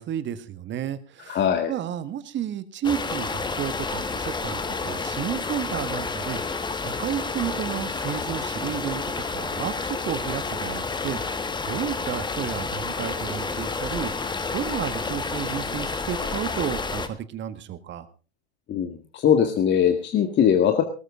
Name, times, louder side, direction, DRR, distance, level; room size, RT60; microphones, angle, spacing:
voice 1, 0.0-1.4 1.7-14.1 14.5-18.1, right 10 dB, 35° right, 13 dB, 1.6 m, -32 dB
voice 2, 1.3-1.7 18.7-20.8, left 8 dB, 30° left, 6 dB, 1.9 m, -21 dB
sound 1, 2.8-17.1, left 4 dB, 15° left, 1.5 m, -30 dB
19.5 x 13.5 x 3.8 m, 0.34 s
hypercardioid pair, 110°, 34 cm